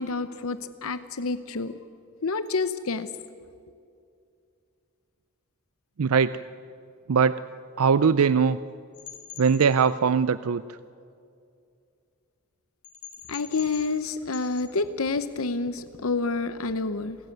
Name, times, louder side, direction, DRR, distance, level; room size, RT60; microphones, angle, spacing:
voice 1, 0.0-1.7 2.2-3.1 13.3-17.2, left 3 dB, 75° left, 12 dB, 0.9 m, -28 dB
voice 2, 6.0-6.4 7.1-7.4 7.8-8.6 9.4-10.8, right 6 dB, 80° right, 15 dB, 0.5 m, -21 dB
sound 1, 8.9-9.7 12.8-14.1 14.3-14.7, left 9 dB, 50° left, 4.3 m, -43 dB
28.0 x 16.0 x 9.2 m, 2.4 s
head